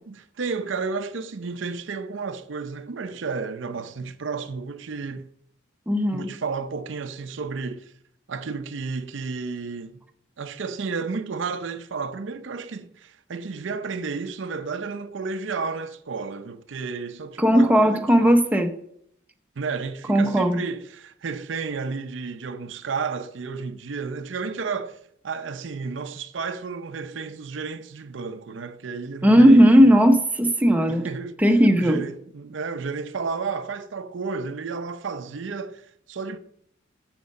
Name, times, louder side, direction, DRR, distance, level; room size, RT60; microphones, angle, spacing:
voice 1, 0.0-5.3 6.1-7.9 8.3-10.0 10.4-18.3 19.6-25.0 25.2-29.9 30.8-31.4 31.8-36.4, right 4 dB, 70° right, 0.5 m, -32 dB
voice 2, 5.9-6.3 17.4-18.7 20.1-20.6 29.2-31.1 31.4-32.0, equal, 10° right, 0.7 m, -16 dB
9.4 x 7.2 x 5.3 m
head